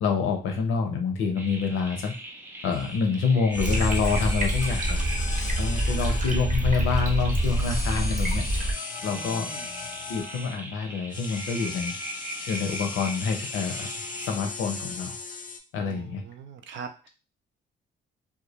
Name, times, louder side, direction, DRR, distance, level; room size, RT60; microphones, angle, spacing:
voice 1, 0.0-2.1 2.6-5.0 5.6-8.4 9.0-9.5 10.1-11.9 12.5-13.9 14.2-15.2 15.7-16.2, left 5 dB, 85° left, 4 dB, 0.6 m, -27 dB
sound 1, 1.3-14.4, right 1 dB, 10° right, 0.4 m, -40 dB
sound 2, 2.7-2.9 3.5-6.7 7.3-10.6 11.1-15.6, left 4 dB, 40° left, 0.5 m, -38 dB
sound 3, 3.5-8.7, right 1 dB, 40° right, 0.8 m, -26 dB
voice 2, 9.1-9.7 15.8-17.1, right 6 dB, 70° right, 7 dB, 0.5 m, -42 dB
2.2 x 2.1 x 2.9 m, 0.31 s
cardioid pair, 90°, 20 cm